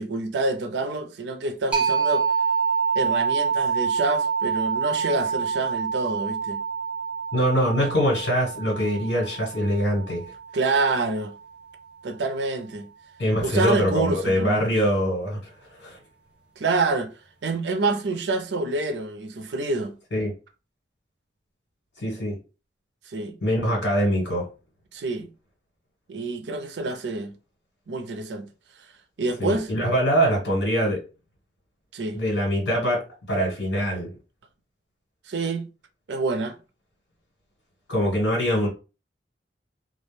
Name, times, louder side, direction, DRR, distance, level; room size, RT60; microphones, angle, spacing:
voice 1, 0.0-2.2 2.9-6.6 10.5-11.3 12.0-12.9 13.4-14.7 16.6-17.1 17.4-19.9 23.1-23.4 24.9-25.3 26.1-27.3 27.9-28.5 29.2-29.7 31.9-32.2 35.3-35.7 36.1-36.6, right 3 dB, 80° right, 0.5 m, -27 dB
sound 1, 1.7-11.1, right 6 dB, 5° right, 0.7 m, -27 dB
voice 2, 7.3-10.3 13.2-16.0 20.1-20.3 22.0-22.4 23.4-24.5 29.4-31.0 32.1-33.0 33.3-34.1 37.9-38.7, equal, 80° left, 1.3 m, -23 dB
2.3 x 2.1 x 3.1 m
head